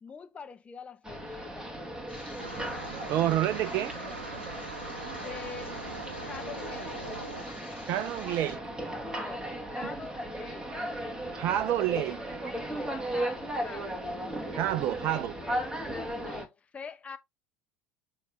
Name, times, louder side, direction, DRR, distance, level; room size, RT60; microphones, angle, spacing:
voice 1, 0.0-1.8 5.1-5.9 6.2-7.0 9.1-10.7 12.6-14.0 15.0-15.2 16.2-17.2, left 6 dB, 20° left, 1.1 m, -45 dB
sound 1, 1.0-16.5, right 1 dB, 10° right, 2.1 m, -37 dB
sound 2, 2.1-8.5, left 1 dB, 85° left, 2.9 m, -47 dB
sound 3, 2.4-7.4, right 3 dB, 85° right, 0.7 m, -42 dB
voice 2, 3.1-4.0 7.7-8.6 11.3-12.2 14.5-15.3, right 12 dB, 45° right, 0.4 m, -28 dB
6.7 x 4.9 x 3.7 m
figure-of-eight pair, 70°, 6 cm